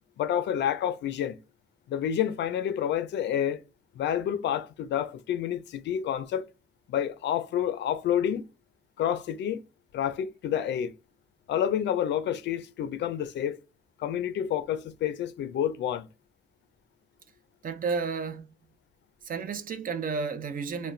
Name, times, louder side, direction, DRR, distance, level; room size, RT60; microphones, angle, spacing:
voice 1, 0.2-1.4 1.9-3.6 3.9-6.5 6.9-8.5 9.0-9.6 9.9-10.9 11.5-13.6 14.0-16.1, left 9 dB, 65° left, 0.4 m, -29 dB
voice 2, 17.6-18.5 19.2-20.9, right 5 dB, 45° right, 0.5 m, -32 dB
2.3 x 2.1 x 3.0 m
cardioid pair, 90°, 20 cm